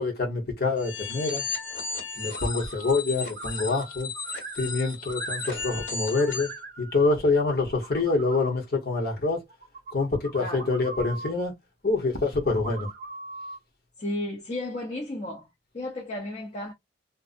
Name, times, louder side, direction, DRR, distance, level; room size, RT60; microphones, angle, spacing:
voice 1, 0.0-1.4 2.2-4.1 4.6-6.5 6.8-9.4 9.9-11.5 11.8-12.9, left 3 dB, 55° left, 1.0 m, -26 dB
sound 1, 0.8-6.6, left 4 dB, 75° left, 1.5 m, -35 dB
sound 2, 2.3-3.0 3.3-5.9 6.2-7.0 7.6-8.5 9.5-11.3 12.4-13.6, right 4 dB, 50° right, 0.6 m, -41 dB
voice 2, 10.4-10.7 11.0-11.1 14.0-15.5 15.7-16.7, left 1 dB, 40° left, 0.6 m, -33 dB
2.5 x 2.1 x 2.5 m
head